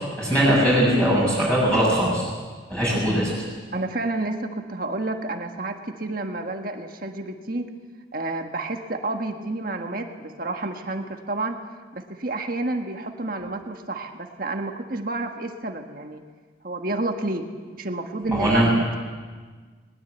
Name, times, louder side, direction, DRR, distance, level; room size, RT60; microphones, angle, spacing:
voice 1, 0.2-2.3 2.7-3.4 18.3-18.7, equal, 5° left, -7 dB, 6.9 m, -20 dB
voice 2, 3.7-7.7 8.1-11.6 11.9-16.2 16.6-17.5 17.8-18.7, right 2 dB, 45° right, 4 dB, 1.5 m, -30 dB
21.0 x 21.0 x 8.1 m, 1.5 s
head